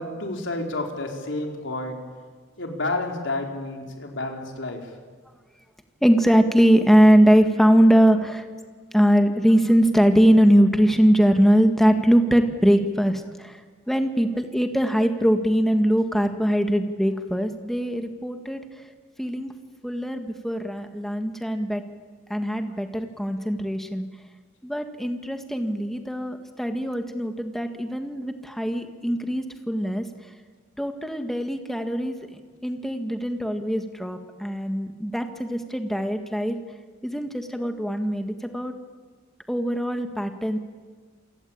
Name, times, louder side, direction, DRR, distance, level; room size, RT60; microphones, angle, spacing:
voice 1, 0.0-2.0 2.6-4.9, left 2 dB, 70° left, 2 dB, 4.3 m, -30 dB
voice 2, 6.0-8.5 8.9-13.6 13.9-18.6 19.2-19.5 19.8-21.8 22.3-24.1 24.6-30.0 30.8-32.2 32.6-36.6 37.0-38.7 39.5-40.6, equal, ahead, 6 dB, 1.8 m, -21 dB
28.0 x 23.5 x 8.8 m, 1.5 s
head